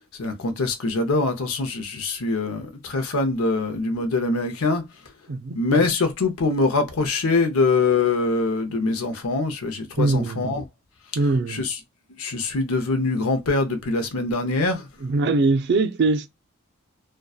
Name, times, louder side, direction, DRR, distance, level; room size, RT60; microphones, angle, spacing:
voice 1, 0.2-4.8 5.5-10.6 11.5-11.8 12.1-14.9, left 3 dB, 85° left, 0.6 m, -23 dB
voice 2, 5.3-5.6 10.0-10.6 11.2-11.6 15.0-16.3, right 3 dB, 55° right, 0.4 m, -22 dB
2.6 x 2.2 x 2.3 m
head